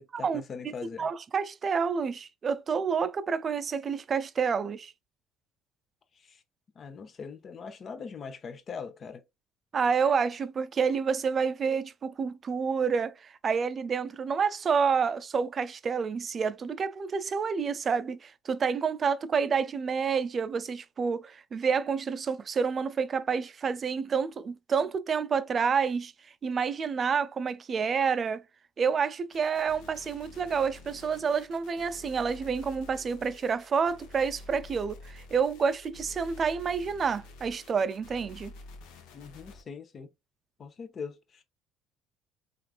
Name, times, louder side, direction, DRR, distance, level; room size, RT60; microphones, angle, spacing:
voice 1, 0.0-1.1 6.2-6.4 6.8-9.2 39.1-40.1 40.6-41.4, left 5 dB, 45° left, 0.7 m, -41 dB
voice 2, 1.0-4.9 9.7-26.1 26.4-28.4 28.8-38.5, right 6 dB, 40° right, 0.4 m, -29 dB
sound 1, 29.3-39.6, left 2 dB, 75° left, 0.7 m, -49 dB
3.3 x 2.5 x 2.4 m
supercardioid pair, 70°, 0 cm